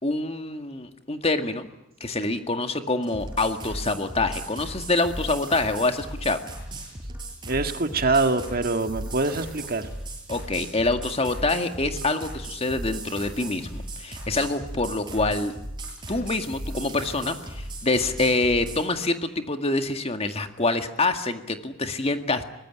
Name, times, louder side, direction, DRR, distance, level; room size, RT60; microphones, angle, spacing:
voice 1, 0.0-1.7 2.0-6.4 10.3-15.5 16.1-22.4, left 2 dB, 30° left, 7 dB, 2.0 m, -26 dB
sound 1, 3.0-18.9, right 1 dB, 20° right, 7.8 m, -37 dB
voice 2, 7.5-9.8, right 3 dB, 45° right, 7 dB, 1.8 m, -24 dB
24.0 x 20.5 x 9.9 m, 0.88 s
head